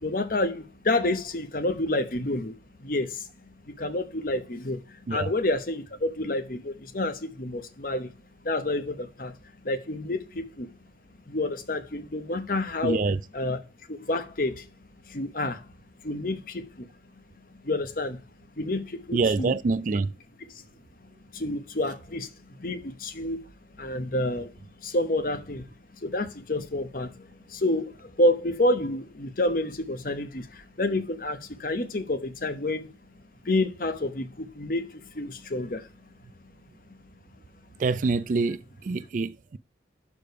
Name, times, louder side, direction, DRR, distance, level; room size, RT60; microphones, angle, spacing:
voice 1, 0.0-3.3 3.6-8.1 8.4-9.4 9.6-10.7 11.3-13.0 13.3-13.6 13.9-14.7 15.1-15.7 16.0-16.9 17.6-18.2 18.6-19.5 20.5-20.6 21.3-23.4 23.8-24.5 24.8-25.7 26.0-32.9 33.4-35.9, left 1 dB, 50° left, 0.9 m, -29 dB
voice 2, 12.8-13.2 19.1-20.1 37.8-39.6, right 4 dB, 45° right, 0.3 m, -26 dB
6.7 x 4.9 x 4.7 m
head